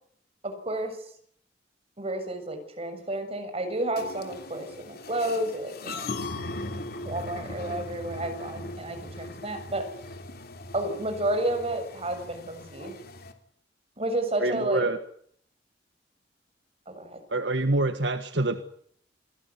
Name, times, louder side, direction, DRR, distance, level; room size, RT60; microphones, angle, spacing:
voice 1, 0.4-1.0 2.0-6.1 7.0-9.8 10.7-12.9 14.0-14.9 16.9-17.2, right 1 dB, 35° right, 7 dB, 6.8 m, -31 dB
sound 1, 4.0-13.3, left 2 dB, 60° left, 3.2 m, -39 dB
voice 2, 14.4-15.0 17.3-18.7, right 2 dB, 70° right, 9 dB, 1.6 m, -26 dB
27.5 x 18.5 x 9.7 m, 0.65 s
head